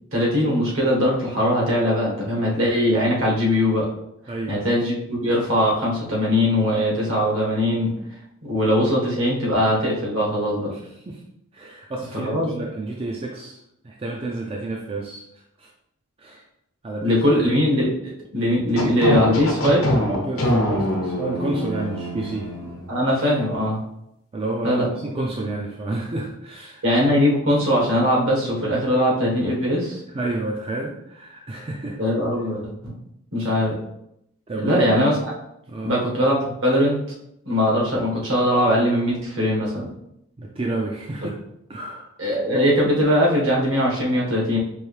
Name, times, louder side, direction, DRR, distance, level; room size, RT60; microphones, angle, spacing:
voice 1, 0.1-3.9 4.5-7.9 8.4-10.7 12.1-12.6 17.0-20.0 22.9-23.8 24.6-24.9 26.8-30.0 32.0-32.9 33.3-33.7 34.6-35.3 35.8-37.0 37.4-39.9 42.2-44.6, equal, 70° right, -4 dB, 1.4 m, -21 dB
voice 2, 4.3-4.7 10.7-11.2 11.5-13.6 13.8-15.2 15.6-15.7 16.2-16.4 16.8-17.4 20.1-22.5 24.3-26.8 30.1-32.0 34.5-34.8 35.7-36.0 40.4-41.3 41.7-42.1, right 2 dB, 25° right, -1 dB, 0.4 m, -30 dB
sound 1, 18.8-22.9, left 1 dB, 85° left, 0.9 m, -24 dB
4.6 x 2.7 x 3.2 m, 0.79 s
head